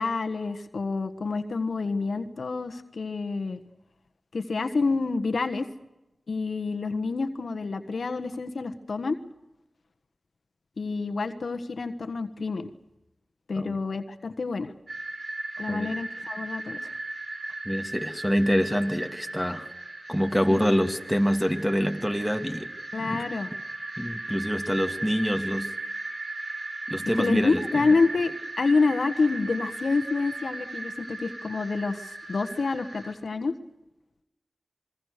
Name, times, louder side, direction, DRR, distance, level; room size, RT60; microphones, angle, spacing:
voice 1, 0.0-3.6 4.3-5.7 6.3-9.2 10.8-12.7 13.5-14.7 15.6-16.8 20.5-20.6 22.9-23.5 27.2-33.5, left 4 dB, 75° left, 10 dB, 1.5 m, -28 dB
sound 1, 14.9-33.1, right 2 dB, 60° right, 5.8 m, -37 dB
voice 2, 17.6-19.7 20.1-22.7 23.1-23.2 24.0-25.7 26.9-27.6, equal, ahead, 4 dB, 2.8 m, -26 dB
26.0 x 23.0 x 6.7 m, 0.96 s
cardioid pair, 40°, 0 cm